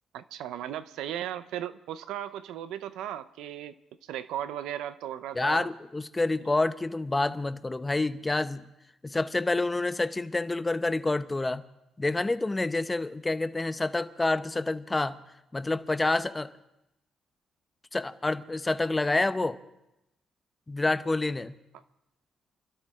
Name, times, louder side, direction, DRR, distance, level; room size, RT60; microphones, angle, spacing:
voice 1, 0.1-5.7, right 11 dB, 90° right, 13 dB, 0.7 m, -36 dB
voice 2, 5.3-8.7 9.0-11.6 12.0-15.2 15.5-16.5 17.9-19.6 20.7-21.6, left 2 dB, 20° left, 11 dB, 0.8 m, -28 dB
27.0 x 13.0 x 3.7 m, 0.89 s
cardioid pair, 90°, 0 cm